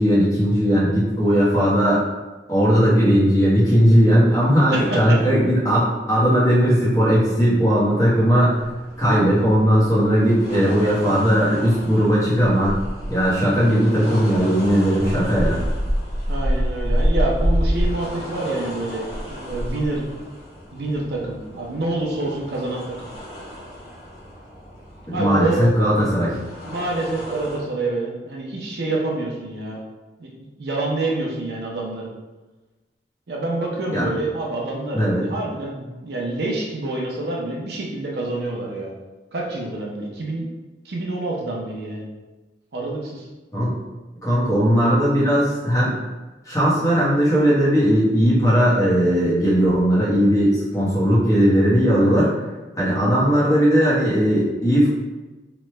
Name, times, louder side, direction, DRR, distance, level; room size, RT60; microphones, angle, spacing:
voice 1, 0.0-2.0 2.5-8.6 9.0-12.7 13.1-15.6 25.1-26.3 33.9-34.1 34.9-35.2 43.5-43.8 44.2-45.9 46.4-52.3 52.8-54.9, equal, 20° left, -8 dB, 0.9 m, -18 dB
voice 2, 4.7-5.2 16.3-20.1 20.7-23.1 25.1-25.6 26.7-29.8 30.2-32.1 33.3-38.9 39.3-40.5 40.8-42.1 42.7-43.3, right 2 dB, 65° right, -2 dB, 0.6 m, -27 dB
sound 1, 8.5-27.6, equal, 55° left, 1.1 m, -29 dB
3.0 x 2.2 x 3.1 m, 1.2 s
head